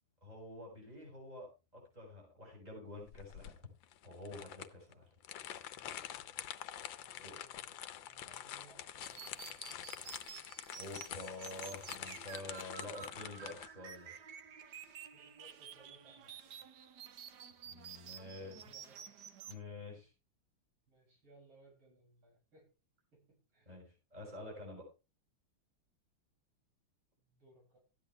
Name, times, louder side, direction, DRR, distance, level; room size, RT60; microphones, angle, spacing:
voice 1, 0.2-3.5 4.0-5.1 7.2-7.4 10.7-14.1 17.6-18.7 19.4-20.1 23.6-24.8, left 2 dB, 20° right, -1 dB, 6.9 m, -48 dB
sound 1, 3.1-13.7, left 11 dB, 75° left, 1.5 m, -46 dB
voice 2, 5.7-6.5 7.0-7.7 8.0-10.2 11.1-11.2 11.6-11.9 15.1-16.5 18.2-19.2 19.8-19.9 20.9-22.7 23.1-23.7 27.2-27.8, right 2 dB, 80° right, -2 dB, 8.0 m, -65 dB
sound 2, 9.0-19.5, right 8 dB, 60° right, 1.5 m, -51 dB
14.5 x 10.5 x 3.4 m, 0.30 s
omnidirectional pair, 2.3 m